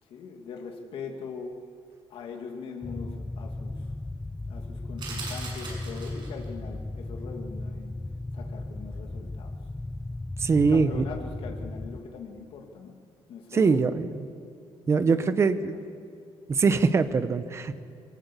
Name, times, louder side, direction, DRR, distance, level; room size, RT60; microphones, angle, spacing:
voice 1, 0.0-1.6 2.1-3.9 4.5-8.0 8.3-9.6 10.5-13.0 13.3-13.8 15.0-15.8, left 5 dB, 60° left, 2 dB, 2.1 m, -41 dB
sound 1, 2.8-12.0, left 2 dB, 10° left, 0.5 m, -36 dB
sound 2, 5.0-6.5, right 4 dB, 45° right, 6.8 m, -39 dB
voice 2, 10.4-11.0 13.5-14.3 14.9-15.7 16.5-17.8, right 4 dB, 25° right, 11 dB, 0.9 m, -23 dB
23.0 x 19.0 x 8.4 m, 2.6 s
cardioid pair, 175°, 11 cm